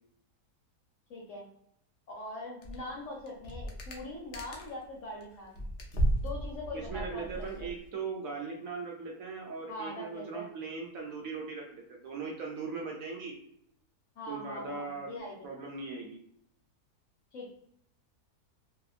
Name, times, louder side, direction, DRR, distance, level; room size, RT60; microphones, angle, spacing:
voice 1, 1.1-1.5 2.2-5.6 6.2-7.5 9.7-10.5 14.2-15.5 17.3-17.5, left 1 dB, 60° left, -2 dB, 0.9 m, -42 dB
sound 1, 2.6-2.9 3.2-4.9 5.2-7.9, right 1 dB, 80° left, 0.5 m, -34 dB
voice 2, 6.7-13.3 14.3-15.1 15.4-16.2, right 4 dB, 70° right, 0 dB, 0.9 m, -39 dB
2.7 x 2.2 x 2.3 m, 0.72 s
omnidirectional pair, 1.7 m